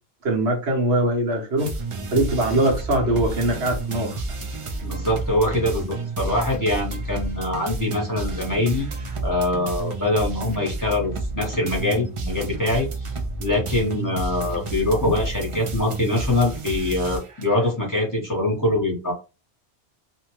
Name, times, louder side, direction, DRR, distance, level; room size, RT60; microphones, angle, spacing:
voice 1, 0.2-1.7 2.1-4.1, right 1 dB, 75° right, 1.2 m, -22 dB
sound 1, 1.6-17.7, right 2 dB, 45° right, 0.4 m, -31 dB
voice 2, 4.8-8.9 9.2-13.1 13.4-19.1, left 1 dB, 20° left, 0.9 m, -24 dB
2.7 x 2.2 x 2.9 m
omnidirectional pair, 1.1 m